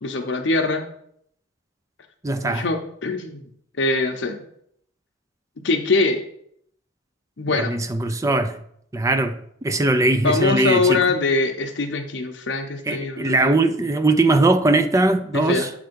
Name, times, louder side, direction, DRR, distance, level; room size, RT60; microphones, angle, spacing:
voice 1, 0.0-0.9 2.4-3.4 3.8-4.4 5.6-6.2 7.4-7.7 10.2-13.6 15.3-15.7, left 3 dB, 65° left, 0.7 m, -23 dB
voice 2, 2.2-2.6 7.5-8.6 8.9-11.0 12.9-15.7, right 2 dB, 15° right, 0.4 m, -20 dB
7.7 x 3.4 x 5.1 m
head